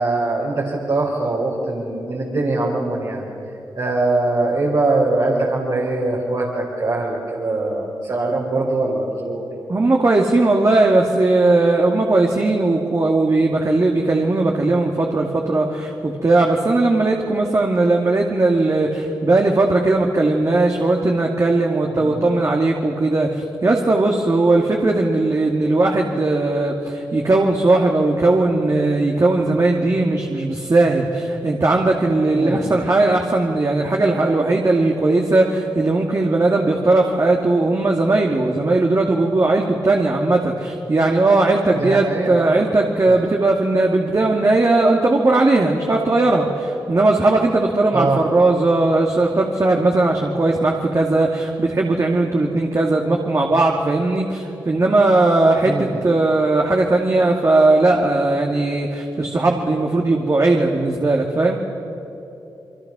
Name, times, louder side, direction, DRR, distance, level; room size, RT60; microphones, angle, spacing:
voice 1, 0.0-3.3 3.8-9.4 21.9-22.2 32.4-32.8 41.7-42.6 43.1-43.2 47.9-48.2 55.6-56.0, right 2 dB, 60° right, -5 dB, 4.6 m, -22 dB
voice 2, 9.7-61.6, right 2 dB, 40° right, 0 dB, 2.3 m, -18 dB
29.5 x 23.0 x 6.2 m, 2.9 s
cardioid pair, 65°, 8 cm